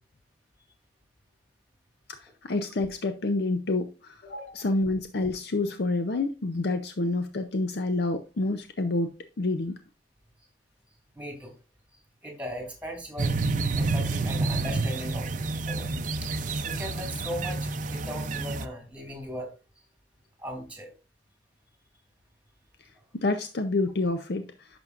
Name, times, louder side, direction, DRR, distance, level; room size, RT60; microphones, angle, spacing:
voice 1, 2.1-9.8 23.1-24.8, left 2 dB, 65° left, 0.6 m, -28 dB
voice 2, 11.1-11.5 12.2-13.3 13.8-15.3 15.6-15.9 16.2-16.3 16.6-19.5 20.4-20.9, equal, 10° right, 2.7 m, -38 dB
sound 1, 13.2-18.6, right 3 dB, 45° right, 0.6 m, -29 dB
10.5 x 6.0 x 2.5 m
head